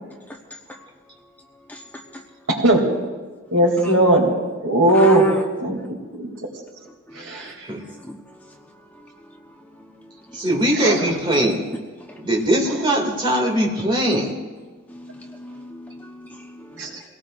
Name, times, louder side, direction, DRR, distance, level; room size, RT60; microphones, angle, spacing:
voice 1, 2.5-2.8 3.5-4.3 4.6-5.8 6.1-6.3 7.1-7.5 10.8-11.0 16.8-16.9, right 1 dB, 85° right, 0 dB, 2.8 m, -18 dB
voice 2, 4.9-5.4 7.3-7.5 7.8-8.6 10.0-10.1 12.1-12.2 14.9-17.0, left 1 dB, 10° left, 1 dB, 0.9 m, -38 dB
voice 3, 10.3-11.6 12.2-14.3, right 1 dB, 25° right, -1 dB, 2.3 m, -20 dB
23.5 x 17.5 x 2.5 m, 1.4 s
head